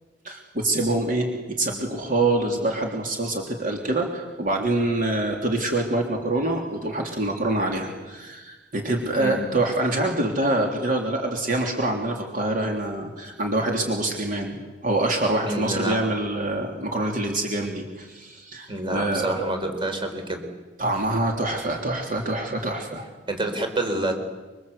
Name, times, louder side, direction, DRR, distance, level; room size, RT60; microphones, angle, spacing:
voice 1, 0.2-14.6 14.8-19.5 20.8-23.0, right 2 dB, 50° right, 2 dB, 3.4 m, -25 dB
voice 2, 15.5-16.0 18.7-20.4 23.3-24.2, right 1 dB, 30° right, 5 dB, 4.2 m, -27 dB
26.5 x 24.5 x 8.3 m, 1.2 s
head